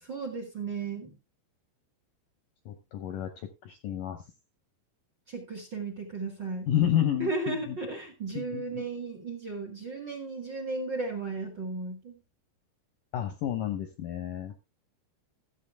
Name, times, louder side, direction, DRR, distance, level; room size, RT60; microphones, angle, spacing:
voice 1, 0.0-1.2 5.3-6.7 7.2-12.1, right 3 dB, 40° right, 4 dB, 1.9 m, -35 dB
voice 2, 2.7-4.2 6.7-7.8 8.4-8.8 13.1-14.6, left 10 dB, 70° left, 7 dB, 2.1 m, -30 dB
14.5 x 8.3 x 3.4 m, 0.26 s
omnidirectional pair, 4.9 m